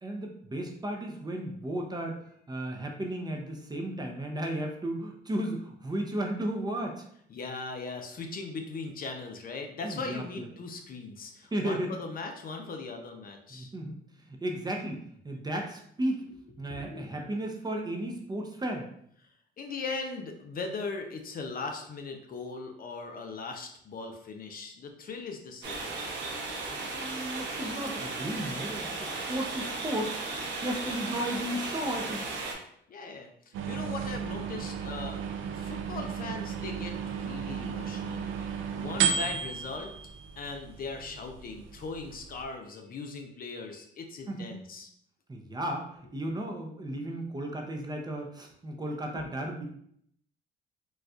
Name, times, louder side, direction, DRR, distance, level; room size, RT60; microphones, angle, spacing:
voice 1, 0.0-2.2 2.5-7.0 9.8-10.5 11.5-11.9 13.5-14.0 14.3-16.2 16.6-18.9 26.9-32.3 44.3-44.5 45.3-49.6, right 1 dB, 20° right, 2 dB, 0.6 m, -34 dB
voice 2, 7.3-13.7 16.7-17.1 19.6-25.9 32.9-35.2 35.5-39.9 40.4-44.9 49.1-49.4, left 4 dB, 45° left, 4 dB, 0.5 m, -39 dB
sound 1, 25.6-32.5, right 3 dB, 65° right, 0.9 m, -35 dB
sound 2, 33.5-42.4, right 7 dB, 85° right, 0.4 m, -34 dB
4.1 x 2.3 x 2.3 m, 0.68 s
cardioid pair, 90°, 20 cm